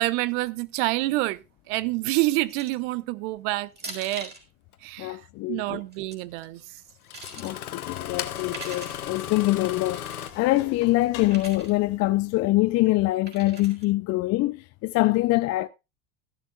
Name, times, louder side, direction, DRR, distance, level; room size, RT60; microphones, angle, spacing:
voice 1, 0.0-1.4 1.7-4.3 4.8-5.2 5.5-6.6 8.6-8.8, right 19 dB, 55° right, 0.9 m, -27 dB
sound 1, 2.5-2.9 3.8-4.4 5.8-6.2 6.8-7.5 8.4-9.0 9.9-10.3 11.3-11.7 13.3-13.8, right 3 dB, 20° right, 4.0 m, -41 dB
Engine starting, 4.7-4.8 6.4-6.5 7.0-10.3, left 11 dB, 85° left, 1.1 m, -35 dB
voice 2, 5.0-5.8 7.4-10.0 10.4-15.7, left 18 dB, 35° left, 0.6 m, -24 dB
sound 2, 7.9-13.1, left 9 dB, 60° left, 2.5 m, -46 dB
14.5 x 11.5 x 2.4 m
hypercardioid pair, 90°, 43 cm